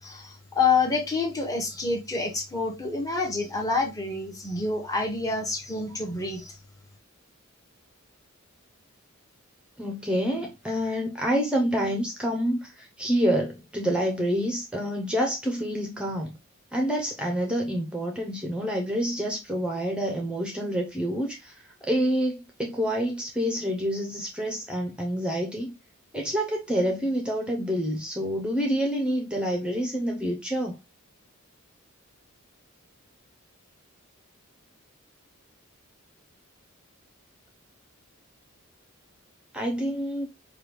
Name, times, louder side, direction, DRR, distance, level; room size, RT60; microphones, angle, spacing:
voice 1, 0.0-6.6, left 4 dB, 15° left, 1.0 m, -27 dB
voice 2, 9.8-16.4 16.7-21.6 21.9-25.7 26.1-30.8 39.5-40.3, equal, 5° right, 0.7 m, -27 dB
4.7 x 2.3 x 3.4 m
head